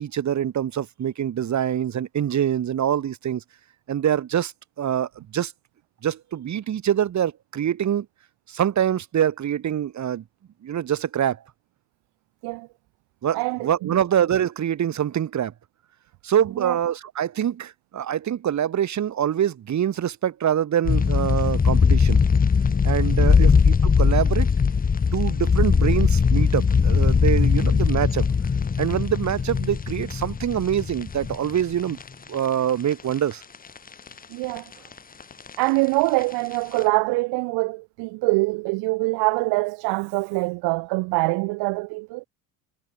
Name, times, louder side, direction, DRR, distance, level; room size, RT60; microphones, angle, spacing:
voice 1, 0.0-3.4 3.9-4.5 4.8-5.5 6.0-8.1 8.5-10.2 10.6-11.4 13.2-15.5 16.2-22.2 22.8-24.5 25.1-28.3 28.8-32.0 32.3-33.4, right 10 dB, 40° right, 5.8 m, -25 dB
voice 2, 13.3-14.0 16.6-16.8 34.3-34.7 35.6-42.2, right 26 dB, 60° right, 2.1 m, -24 dB
sound 1, 20.8-32.3 32.7-32.8 33.3-34.1 34.4-34.6 34.9-36.2 36.5-36.8, left 5 dB, 20° left, 1.5 m, -20 dB
hypercardioid pair, 75°, 44 cm